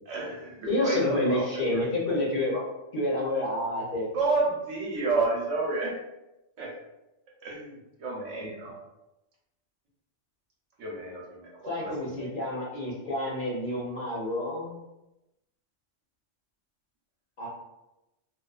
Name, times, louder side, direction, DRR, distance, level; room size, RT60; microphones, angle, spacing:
voice 1, 0.1-1.4 4.1-5.9 6.6-6.7 7.4-8.8 10.8-11.5 11.8-11.9 12.2-12.3, right 3 dB, 80° right, -2 dB, 1.0 m, -30 dB
voice 2, 0.7-2.6 2.9-4.1 8.4-8.5 11.6-14.8 17.4-17.5, left 1 dB, 55° left, -5 dB, 0.7 m, -29 dB
2.4 x 2.3 x 2.2 m, 0.95 s
omnidirectional pair, 1.3 m